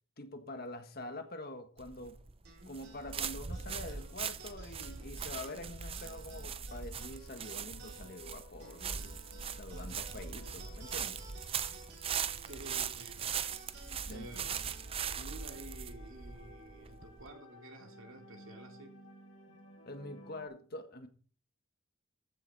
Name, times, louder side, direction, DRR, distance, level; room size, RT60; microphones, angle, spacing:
voice 1, 0.2-2.2 2.6-9.1 9.5-11.2 14.1-14.3 19.8-21.1, left 2 dB, 45° left, 1.5 m, -45 dB
sound 1, 1.8-17.3, right 7 dB, 25° right, 0.5 m, -40 dB
sound 2, 2.4-17.2, right 3 dB, 50° right, 4.0 m, -57 dB
sound 3, 3.6-20.5, left 1 dB, 90° left, 6.0 m, -58 dB
voice 2, 12.4-13.2 14.1-14.6 15.1-19.0, right 1 dB, 75° right, 2.4 m, -51 dB
14.5 x 8.0 x 4.2 m
head